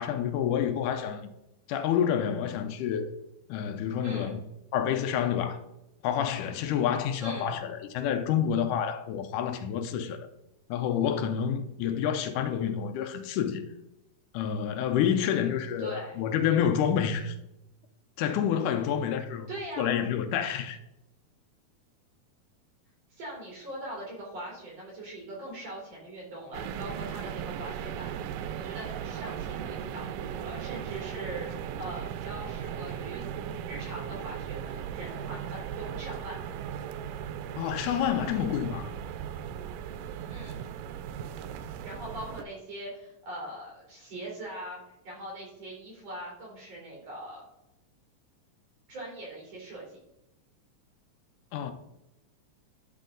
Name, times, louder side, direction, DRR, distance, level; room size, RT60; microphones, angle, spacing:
voice 1, 0.0-1.3 1.7-3.1 3.5-4.4 4.7-5.6 6.0-10.2 10.7-13.6 14.3-17.4 18.2-19.5 19.8-20.8 37.6-38.9 51.5-51.7, left 8 dB, 80° left, 2.2 m, -28 dB
voice 2, 4.0-4.4 7.2-7.6 15.8-16.2 19.5-20.0 23.1-28.2 28.6-33.2 33.7-36.4 40.3-40.7 41.8-44.8 45.0-47.5 48.9-50.0, right 1 dB, 55° right, 4.7 m, -41 dB
sound 1, 26.5-42.4, right 9 dB, 90° right, 2.2 m, -37 dB
10.5 x 6.2 x 3.9 m
omnidirectional pair, 3.6 m